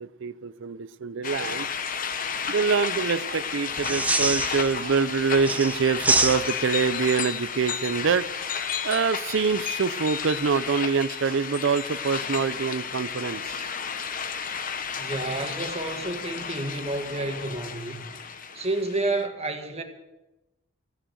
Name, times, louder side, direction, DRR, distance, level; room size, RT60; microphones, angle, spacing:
voice 1, 0.0-1.7 2.5-8.5 8.8-13.7, right 5 dB, 65° right, 0.5 m, -25 dB
sound 1, 1.2-19.2, left 7 dB, 45° left, 0.9 m, -32 dB
sound 2, 3.7-5.0 5.4-6.8 9.3-9.7, right 2 dB, 10° right, 0.9 m, -26 dB
voice 2, 15.0-18.0 18.5-19.8, right 2 dB, 30° right, 1.8 m, -30 dB
15.5 x 10.0 x 7.8 m
head